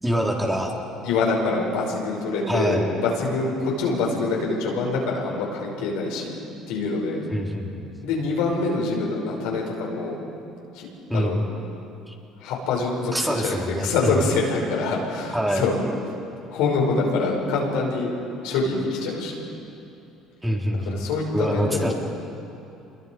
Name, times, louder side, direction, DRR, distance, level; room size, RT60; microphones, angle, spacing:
voice 1, 0.0-0.7 2.5-2.8 7.3-7.9 11.1-11.3 13.1-14.2 15.3-15.7 20.4-21.0 21.3-21.9, equal, 5° right, -1 dB, 3.9 m, -25 dB
voice 2, 1.0-6.3 6.7-7.2 8.0-10.2 10.7-11.4 12.4-15.8 16.5-18.1 18.4-19.4 20.7-21.9, left 3 dB, 80° left, -2 dB, 5.5 m, -25 dB
27.0 x 22.0 x 5.3 m, 2.8 s
supercardioid pair, 75°, 0 cm